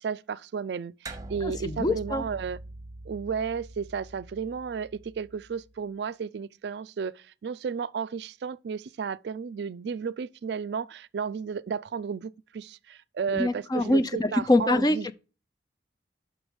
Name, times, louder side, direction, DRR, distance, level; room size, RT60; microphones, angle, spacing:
voice 1, 0.0-2.6 3.1-15.1, right 6 dB, 60° right, 0.3 m, -33 dB
sound 1, 1.1-5.8, right 2 dB, 20° right, 0.9 m, -43 dB
voice 2, 1.4-2.2 13.3-15.1, left 2 dB, 20° left, 0.4 m, -24 dB
5.9 x 5.0 x 6.3 m
head